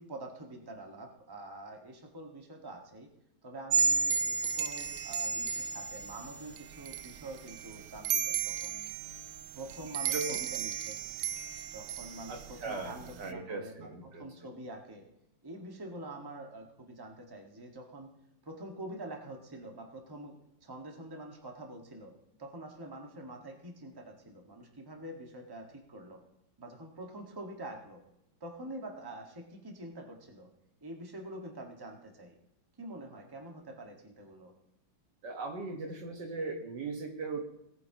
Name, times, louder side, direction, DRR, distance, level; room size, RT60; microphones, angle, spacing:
voice 1, 0.0-3.1 3.4-8.9 9.5-11.0 11.7-15.0 15.4-18.1 18.4-20.4 20.6-22.1 22.4-26.2 26.6-28.0 28.4-30.5 30.8-32.3 32.8-34.5, right 1 dB, 15° right, 2 dB, 1.5 m, -46 dB
sound 1, 3.7-13.3, right 6 dB, 85° right, 1.4 m, -34 dB
voice 2, 10.1-10.5 12.3-14.2 35.2-37.4, right 3 dB, 65° right, 4 dB, 1.9 m, -38 dB
18.5 x 9.5 x 2.9 m, 0.84 s
omnidirectional pair, 2.1 m